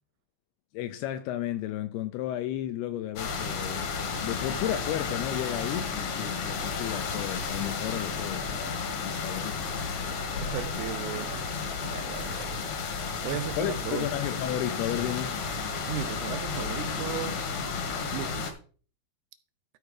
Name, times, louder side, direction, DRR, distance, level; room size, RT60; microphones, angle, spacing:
voice 1, 0.7-3.9 4.2-9.6 13.6-15.4, left 12 dB, 85° left, 2.4 m, -33 dB
sound 1, 3.2-18.5, left 5 dB, 60° left, 1.9 m, -32 dB
voice 2, 10.4-11.5 11.8-12.6 12.9-14.1 15.9-17.4 18.1-18.5, right 11 dB, 80° right, 2.5 m, -36 dB
13.5 x 4.6 x 4.8 m
omnidirectional pair, 5.0 m